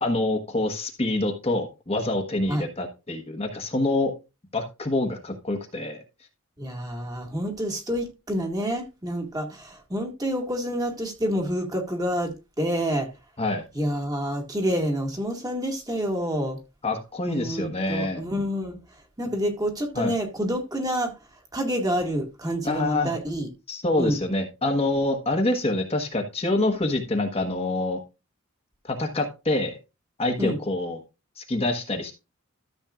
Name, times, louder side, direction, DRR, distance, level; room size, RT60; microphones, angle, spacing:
voice 1, 0.0-4.1 4.5-6.0 13.4-13.6 16.8-18.2 20.0-20.1 22.6-23.1 23.7-28.0 28.9-29.7 30.2-31.0 31.4-32.1, left 2 dB, 30° left, 1.3 m, -26 dB
voice 2, 6.6-13.1 13.7-16.6 17.3-18.8 19.2-21.1 21.5-23.5 24.0-24.2 30.4-30.6, equal, 20° right, 1.9 m, -28 dB
13.0 x 7.5 x 2.5 m
head